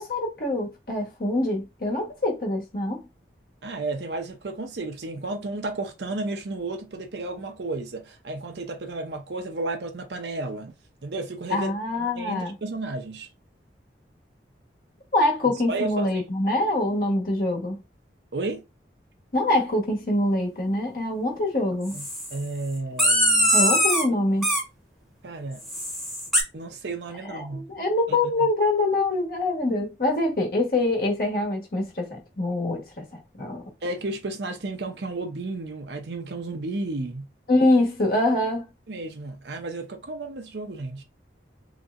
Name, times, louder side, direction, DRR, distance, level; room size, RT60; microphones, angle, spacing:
voice 1, 0.0-3.0 11.5-12.5 15.1-17.8 19.3-22.0 23.5-24.5 27.3-33.6 37.5-38.6, left 2 dB, 50° left, 1.2 m, -24 dB
voice 2, 3.6-10.7 11.0-11.7 12.1-13.3 15.5-16.2 18.3-18.6 21.9-23.5 25.2-25.7 26.5-27.7 28.4-28.5 33.8-37.3 38.9-41.0, right 2 dB, 75° right, 0.7 m, -33 dB
sound 1, 21.9-22.4 23.0-24.1 24.4-24.6 25.6-26.4, equal, ahead, 1.0 m, -22 dB
3.3 x 2.9 x 2.5 m
head